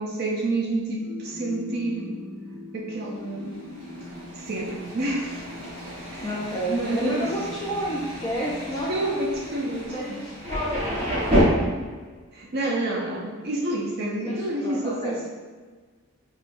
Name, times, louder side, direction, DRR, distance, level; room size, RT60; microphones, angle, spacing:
voice 1, 0.0-2.1 2.7-3.6 4.3-5.5 5.9-6.3 6.7-7.3 8.9-10.2 12.3-15.3, right 2 dB, 45° right, -1 dB, 0.5 m, -29 dB
sound 1, 1.0-9.8, left 2 dB, 45° left, 0.8 m, -41 dB
Thunder, 3.3-11.4, equal, 30° right, 1.1 m, -31 dB
voice 2, 6.2-9.2 9.6-11.6 14.2-15.2, equal, 20° left, -7 dB, 0.4 m, -31 dB
5.4 x 2.2 x 2.5 m, 1.4 s
head